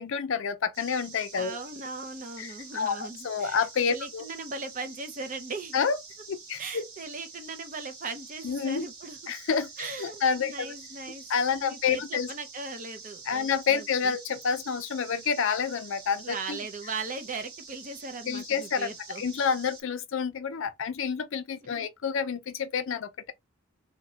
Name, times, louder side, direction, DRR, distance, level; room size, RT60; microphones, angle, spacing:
voice 1, 0.0-1.6 2.4-4.2 5.7-6.0 6.3-6.8 8.4-8.9 9.3-10.7 11.3-12.3 13.3-16.6 18.3-23.3, left 6 dB, 65° left, 0.4 m, -29 dB
sound 1, 0.7-19.8, right 4 dB, 90° right, 1.6 m, -47 dB
voice 2, 1.3-5.8 6.6-9.2 9.8-11.2 11.5-14.2 16.2-19.2 21.7-21.9, right 3 dB, 35° right, 0.5 m, -38 dB
2.9 x 2.2 x 2.7 m
head